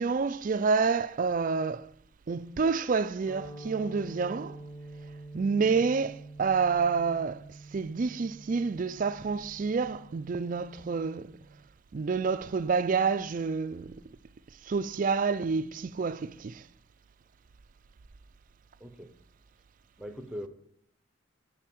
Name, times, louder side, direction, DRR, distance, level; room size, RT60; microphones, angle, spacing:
voice 1, 0.0-1.9 2.3-4.6 5.3-7.4 7.7-11.4 11.9-14.0 14.6-16.6, right 5 dB, 40° right, 0.4 m, -28 dB
sound 1, 3.3-11.6, right 2 dB, 10° left, 1.3 m, -47 dB
voice 2, 18.8-19.1 20.0-20.5, equal, 5° right, 0.8 m, -41 dB
9.9 x 4.5 x 7.7 m
head